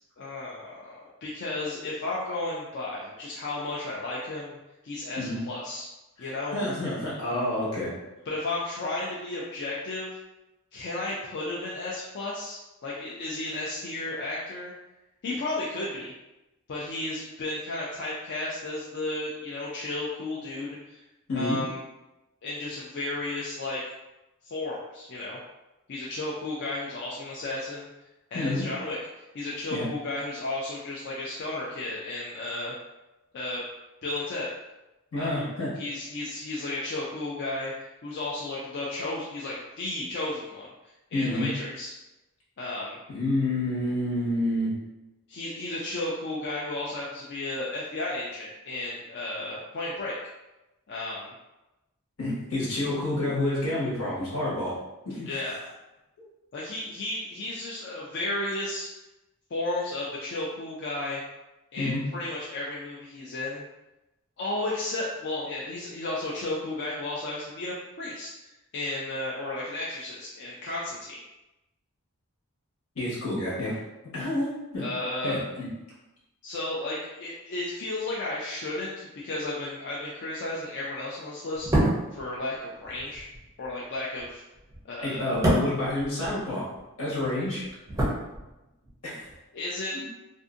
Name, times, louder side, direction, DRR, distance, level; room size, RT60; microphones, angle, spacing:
voice 1, 0.2-4.6 4.8-5.9 6.2-6.6 8.3-10.2 10.7-14.7 15.2-16.1 16.7-21.0 21.3-21.8 22.4-23.8 24.4-25.4 25.9-27.9 28.3-32.7 33.3-33.6 34.0-34.5 35.2-35.4 35.8-41.9 42.6-43.0 45.3-50.2 50.9-51.3 55.3-55.6 56.5-58.9 59.5-61.2 61.7-63.6 64.4-71.2 74.8-75.4 76.4-81.7 82.1-83.3 83.6-84.4 84.8-85.3 89.5-90.0, left 2 dB, 50° left, -5 dB, 0.4 m, -33 dB
voice 2, 6.5-7.9 21.3-21.6 28.3-28.6 29.7-29.9 35.1-35.7 41.1-41.5 43.1-44.7 52.2-54.8 55.0-55.5 61.8-62.0 72.9-73.8 74.1-74.8 75.2-75.7 85.0-86.6 87.0-87.6 89.0-89.3 89.9-90.1, left 1 dB, 80° left, -7 dB, 1.2 m, -29 dB
sound 1, 81.5-86.8 87.1-88.9 89.2-89.4, right 1 dB, 15° right, 0.5 m, -29 dB
2.6 x 2.5 x 2.5 m, 1.0 s
head